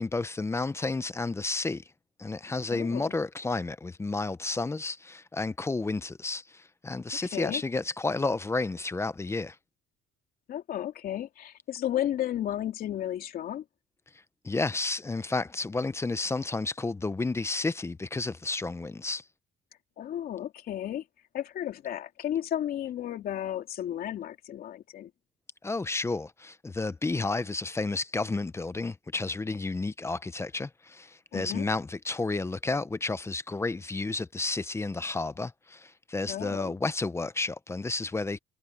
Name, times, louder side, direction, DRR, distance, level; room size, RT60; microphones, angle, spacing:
voice 1, 0.0-1.8 2.2-9.6 14.4-19.2 25.6-38.4, left 3 dB, 15° left, 0.8 m, -31 dB
voice 2, 2.7-3.1 7.3-7.6 10.5-13.6 20.0-21.0 21.3-25.1 31.3-31.6 36.3-36.7, left 11 dB, 60° left, 2.9 m, -33 dB
cardioid pair, 110°, 17 cm